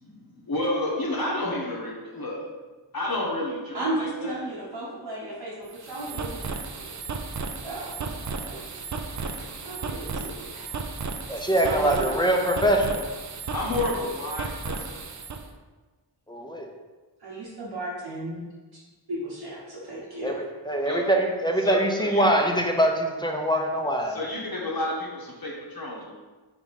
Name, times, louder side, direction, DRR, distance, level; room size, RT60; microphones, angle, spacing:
voice 1, 0.0-2.4 2.9-4.4 9.1-9.5 10.6-10.8 13.5-15.0 20.8-21.0 21.6-21.8 22.0-22.2 24.1-26.2, left 1 dB, 50° left, -4 dB, 1.0 m, -31 dB
voice 2, 3.7-5.5 5.8-7.0 7.6-8.1 8.4-8.7 9.6-10.5 11.6-12.4 17.2-18.4 19.1-20.4, right 1 dB, 65° right, -8 dB, 1.1 m, -34 dB
sound 1, 5.6-15.4, right 4 dB, 40° right, 0.4 m, -34 dB
voice 3, 11.3-13.1 16.3-16.7 20.2-24.3, right 1 dB, 10° left, 1 dB, 0.6 m, -23 dB
3.6 x 3.4 x 4.1 m, 1.3 s
wide cardioid pair, 50°, 46 cm